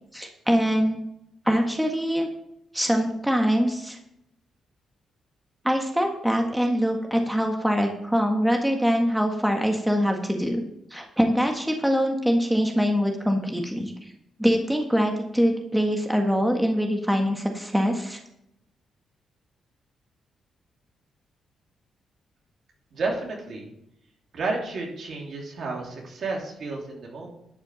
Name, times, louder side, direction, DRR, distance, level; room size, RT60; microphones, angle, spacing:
voice 1, 0.1-1.0 1.4-2.3 2.7-4.0 5.6-10.6 10.9-13.9 14.4-18.2, equal, 5° right, 2 dB, 1.6 m, -23 dB
voice 2, 22.9-23.7 24.3-27.3, right 3 dB, 60° right, -1 dB, 3.2 m, -31 dB
11.5 x 5.1 x 7.5 m, 0.77 s
cardioid pair, 70°, 0 cm